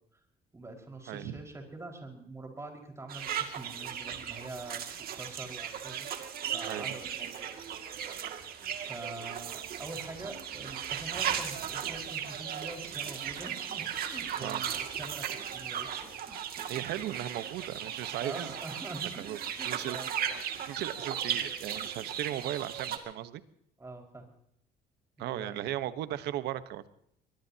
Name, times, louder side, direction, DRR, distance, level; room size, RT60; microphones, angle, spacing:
voice 1, 0.5-4.8 5.1-6.1 6.5-7.5 8.9-16.5 18.2-20.1 23.8-24.3 25.2-25.7, right 2 dB, 15° right, 2 dB, 5.2 m, -45 dB
voice 2, 1.1-1.4 6.7-6.9 14.4-14.6 16.7-18.5 19.2-19.4 19.6-20.0 20.4-23.4 25.2-26.9, right 13 dB, 80° right, 13 dB, 1.2 m, -37 dB
sound 1, 3.1-23.0, right 9 dB, 60° right, 2.3 m, -36 dB
22.5 x 22.0 x 2.9 m, 0.72 s
cardioid pair, 110°, 17 cm